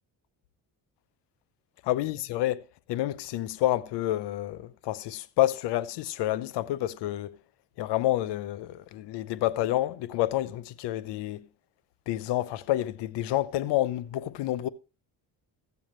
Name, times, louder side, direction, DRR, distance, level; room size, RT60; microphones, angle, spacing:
voice 1, 1.8-7.4 7.8-11.5 12.1-14.7, left 14 dB, 80° left, 0.8 m, -29 dB
15.5 x 7.1 x 3.1 m
cardioid pair, 85°, 41 cm